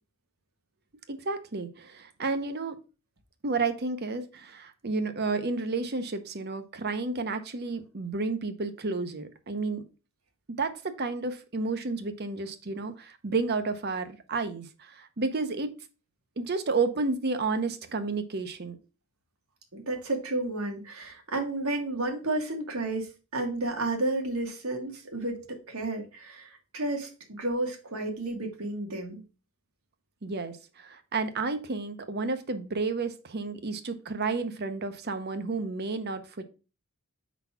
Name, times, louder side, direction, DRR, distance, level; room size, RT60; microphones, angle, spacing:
voice 1, 1.1-2.8 3.4-9.8 10.6-15.7 16.4-18.8 30.2-36.4, right 3 dB, 50° right, 0.8 m, -31 dB
voice 2, 19.7-27.1 27.4-29.2, right 2 dB, 85° right, 1.7 m, -32 dB
4.7 x 4.1 x 5.6 m
head